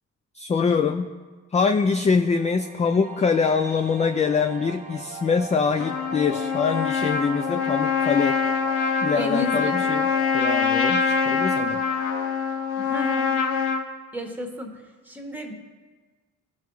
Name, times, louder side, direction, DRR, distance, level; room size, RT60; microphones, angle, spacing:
voice 1, 0.3-1.1 1.5-8.4 9.0-10.1 10.3-11.8, left 5 dB, 25° left, 8 dB, 0.4 m, -24 dB
sound 1, 2.1-13.2, right 3 dB, 25° right, 0.9 m, -41 dB
Trumpet, 5.8-13.8, left 5 dB, 80° left, 1.0 m, -24 dB
voice 2, 9.1-9.8 12.8-13.3 14.1-15.5, left 1 dB, 5° right, 2 dB, 1.5 m, -32 dB
15.5 x 5.6 x 3.2 m, 1.4 s
cardioid pair, 90°, 30 cm